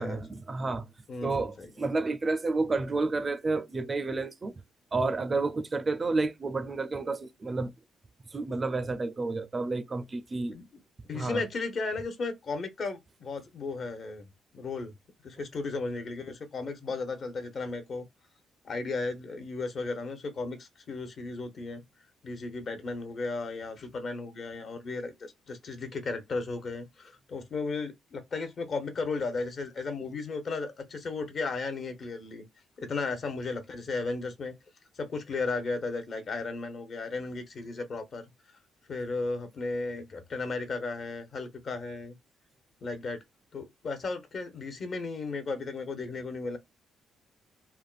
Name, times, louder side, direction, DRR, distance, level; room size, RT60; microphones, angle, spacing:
voice 1, 0.0-0.9 1.2-4.5 4.9-7.7 8.3-10.5 11.1-11.4, right 3 dB, 30° right, 0.4 m, -30 dB
voice 2, 1.1-1.7 10.5-10.6 11.1-14.3 14.5-14.9 15.2-18.1 18.6-21.8 22.2-32.5 32.8-34.5 34.9-38.2 38.9-42.2 42.8-43.2 43.5-46.6, left 3 dB, 50° left, 0.8 m, -35 dB
3.4 x 2.2 x 2.4 m
cardioid pair, 90°, 0 cm